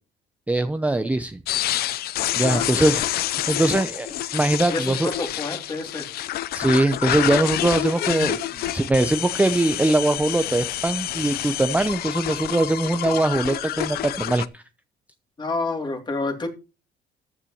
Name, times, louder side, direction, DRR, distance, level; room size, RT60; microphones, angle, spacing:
voice 1, 0.5-1.4 2.4-3.0 3.3-5.1 6.5-8.4 8.7-14.6, right 2 dB, 10° right, 9 dB, 0.7 m, -22 dB
sound 1, 1.5-14.5, left 13 dB, 65° left, 0.6 m, -28 dB
voice 2, 2.5-3.0 4.7-6.1 15.4-16.5, left 3 dB, 25° left, 4 dB, 2.8 m, -29 dB
14.0 x 9.9 x 3.0 m, 0.31 s
cardioid pair, 110°, 17 cm